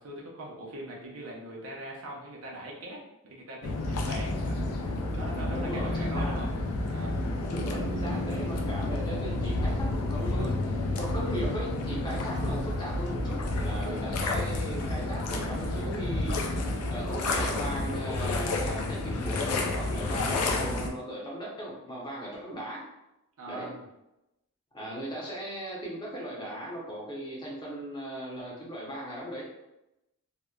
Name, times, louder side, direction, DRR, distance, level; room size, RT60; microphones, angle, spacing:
voice 1, 0.0-3.0 3.3-4.6 5.1-6.5 6.8-7.2 13.8-14.1 23.4-23.9, right 1 dB, 70° right, -3 dB, 0.6 m, -41 dB
sound 1, 3.6-20.9, left 2 dB, 85° left, 0.4 m, -30 dB
voice 2, 5.5-6.4 7.5-22.8 23.5-23.7 24.7-29.4, right 1 dB, 20° left, -5 dB, 0.7 m, -38 dB
2.8 x 2.1 x 2.3 m, 0.92 s
head